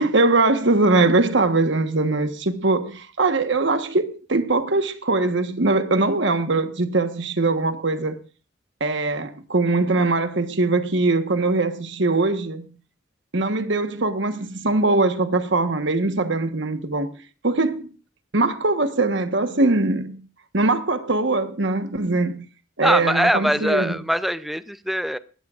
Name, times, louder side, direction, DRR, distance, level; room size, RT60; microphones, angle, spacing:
voice 1, 0.0-8.2 8.8-12.6 13.3-17.1 17.4-17.9 18.3-20.2 20.5-22.4 22.8-24.0, right 3 dB, 60° right, 1.3 m, -21 dB
voice 2, 22.8-25.2, equal, ahead, 0.5 m, -22 dB
19.5 x 14.0 x 2.5 m
head